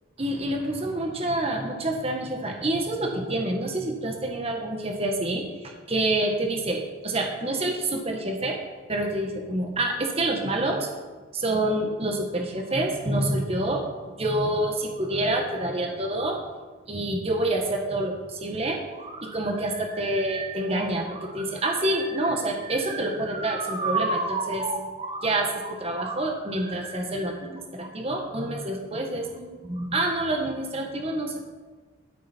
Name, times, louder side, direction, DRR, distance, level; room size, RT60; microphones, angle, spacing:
voice 1, 0.2-8.6 8.9-10.9 11.3-16.4 16.9-31.4, right 1 dB, 30° right, 2 dB, 1.4 m, -27 dB
12.5 x 12.5 x 4.4 m, 1.4 s
head